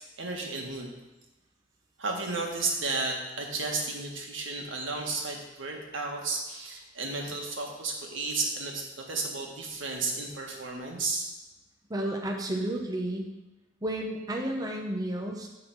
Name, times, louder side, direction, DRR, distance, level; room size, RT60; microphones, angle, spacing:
voice 1, 0.2-0.9 2.0-11.3, right 3 dB, 85° right, 0 dB, 1.7 m, -33 dB
voice 2, 11.9-13.3 13.8-15.5, right 1 dB, 20° right, 0 dB, 0.8 m, -31 dB
11.0 x 3.9 x 7.1 m, 1.0 s
head